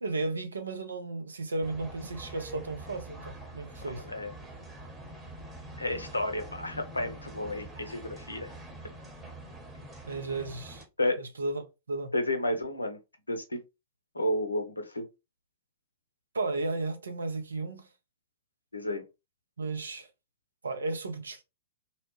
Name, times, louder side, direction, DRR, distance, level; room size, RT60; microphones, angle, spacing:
voice 1, 0.0-4.0 10.1-10.8 11.2-12.1 16.3-17.9 19.6-20.1 20.6-21.4, right 3 dB, 70° right, 0.6 m, -34 dB
sound 1, 1.6-10.8, right 1 dB, 15° right, 0.9 m, -45 dB
voice 2, 3.9-4.3 5.8-8.5 11.0-11.2 12.1-13.0 13.3-13.6 14.1-15.1 18.7-19.0, left 1 dB, 80° left, 0.6 m, -31 dB
2.7 x 2.1 x 2.9 m
figure-of-eight pair, 105°, 0 cm